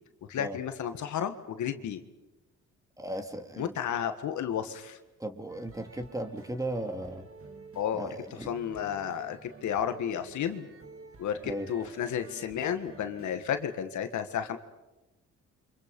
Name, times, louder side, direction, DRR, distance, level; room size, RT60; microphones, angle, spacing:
voice 1, 0.3-2.0 3.6-5.0 7.8-8.1 8.5-10.7 11.2-14.6, left 9 dB, 70° left, 8 dB, 1.7 m, -32 dB
voice 2, 3.0-3.8 5.2-7.3 7.9-8.5 11.4-11.7, right 1 dB, 10° right, 6 dB, 2.3 m, -36 dB
sound 1, 5.5-13.8, right 4 dB, 45° right, 2.7 m, -51 dB
29.5 x 25.5 x 5.4 m, 1.1 s
cardioid pair, 90°, 30 cm